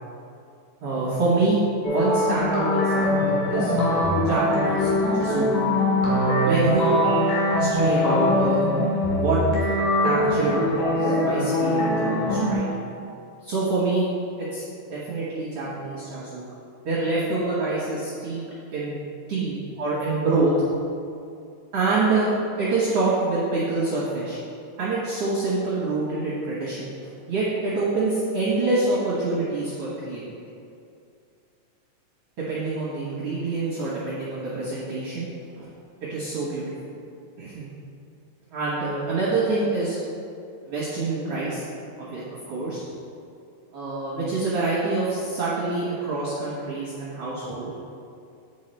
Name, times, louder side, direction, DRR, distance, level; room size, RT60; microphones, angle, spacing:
voice 1, 0.8-3.7 4.3-5.5 6.5-7.0 7.5-8.7 9.1-9.4 10.0-10.6 11.0-12.7 13.4-14.1 14.4-16.4 16.8-19.0 19.3-20.5 21.7-22.3 22.6-24.4 24.8-30.2 32.4-35.3 35.6-35.7 36.0-36.6 37.4-37.7 38.5-40.0 40.7-41.6 42.0-42.2 42.5-42.8 43.7-47.7, right 3 dB, 55° right, -10 dB, 1.9 m, -26 dB
sound 1, 1.8-12.5, left 1 dB, 75° left, 3.1 m, -22 dB
9.2 x 5.6 x 3.3 m, 2.5 s
omnidirectional pair, 3.8 m